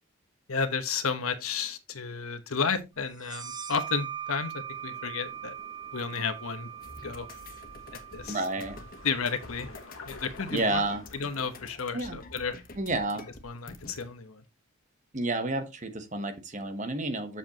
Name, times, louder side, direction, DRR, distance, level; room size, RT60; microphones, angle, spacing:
voice 1, 0.5-5.5 5.9-6.7 7.0-7.3 8.1-8.4 9.0-9.7 10.1-10.8 11.1-12.6 13.4-14.4, left 5 dB, 85° left, 1.2 m, -32 dB
sound 1, 3.2-10.5, right 9 dB, 20° right, 0.4 m, -42 dB
sound 2, 4.7-11.8, left 4 dB, 70° left, 1.6 m, -51 dB
sound 3, 6.8-14.0, left 2 dB, 40° left, 1.2 m, -47 dB
voice 2, 8.3-8.8 10.5-11.0 11.9-12.2 12.8-13.3 15.1-17.4, right 2 dB, 35° right, 1.2 m, -30 dB
7.8 x 7.1 x 3.0 m
head